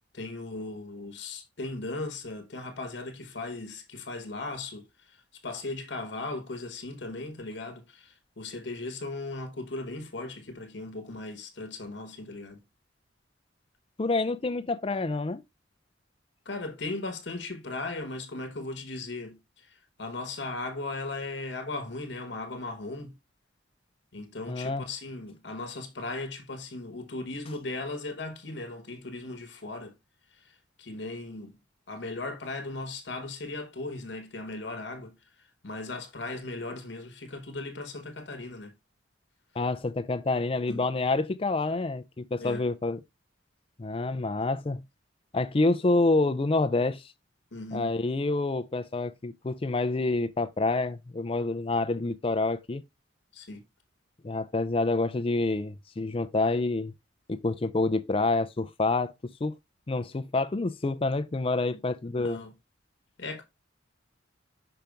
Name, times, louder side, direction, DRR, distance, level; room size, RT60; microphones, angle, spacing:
voice 1, 0.1-12.6 16.4-23.2 24.1-29.9 30.3-31.6 31.9-38.7 40.7-40.8 42.4-42.6 47.5-48.0 53.3-53.6 61.7-61.8 62.2-62.5 63.2-63.4, left 2 dB, 60° left, 1.0 m, -37 dB
voice 2, 14.0-15.4 24.5-24.9 39.6-43.0 43.8-44.8 45.3-47.1 47.7-52.8 54.2-56.9 57.3-59.1 59.4-59.5 59.9-62.4, left 3 dB, 30° left, 0.4 m, -27 dB
5.8 x 5.1 x 3.4 m
head